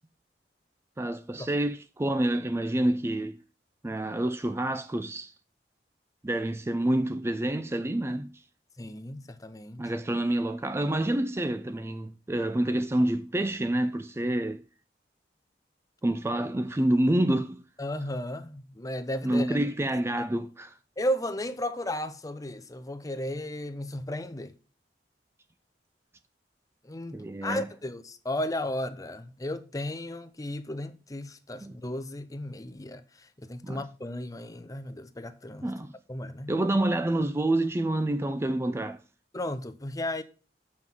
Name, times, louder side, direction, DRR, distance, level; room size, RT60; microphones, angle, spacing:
voice 1, 1.0-3.4 3.8-5.3 6.2-8.4 9.8-14.6 16.0-17.6 19.2-20.7 27.1-27.7 31.6-31.8 33.6-33.8 35.6-35.9 36.5-39.0, right 1 dB, 15° right, 0.4 m, -28 dB
voice 2, 8.8-9.9 17.8-19.6 21.0-24.5 26.8-33.0 33.4-35.7 36.1-36.5 39.3-40.2, left 1 dB, 20° left, 0.8 m, -34 dB
7.3 x 6.1 x 7.5 m
head